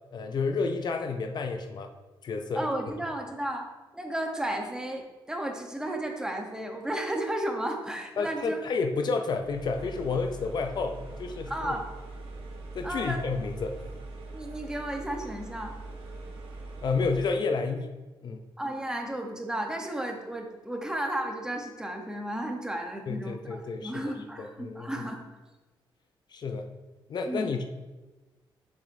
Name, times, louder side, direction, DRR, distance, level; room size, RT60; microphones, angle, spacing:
voice 1, 0.1-1.9 2.2-2.7 8.2-11.7 12.7-13.9 16.8-17.9 18.2-18.4 23.1-24.1 24.4-25.0 26.3-26.7 27.1-27.6, left 4 dB, 50° left, 5 dB, 0.5 m, -30 dB
voice 2, 2.5-3.7 3.9-8.6 11.5-11.9 12.8-13.3 14.3-15.7 18.6-25.3 27.3-27.5, right 1 dB, 10° right, 3 dB, 0.9 m, -33 dB
sound 1, 9.3-17.4, right 2 dB, 90° right, 0.9 m, -42 dB
6.9 x 6.5 x 2.6 m, 1.2 s
cardioid pair, 115°, 9 cm